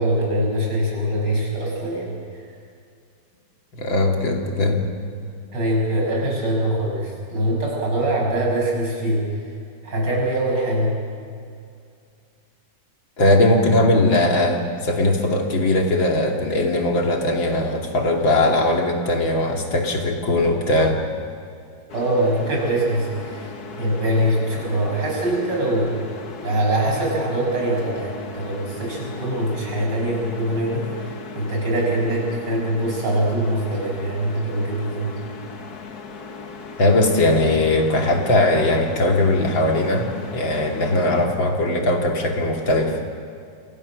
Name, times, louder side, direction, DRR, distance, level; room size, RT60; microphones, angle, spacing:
voice 1, 0.0-2.4 5.5-9.3 9.8-10.9 21.9-23.5 23.8-26.1 26.4-35.1 41.0-41.2, right 1 dB, 60° right, -2 dB, 7.4 m, -23 dB
voice 2, 3.7-4.8 13.2-21.0 36.8-43.0, left 1 dB, 75° left, 1 dB, 3.5 m, -19 dB
sound 1, 21.9-41.3, left 3 dB, 55° left, 2.0 m, -37 dB
28.0 x 27.0 x 6.5 m, 2.4 s
omnidirectional pair, 2.1 m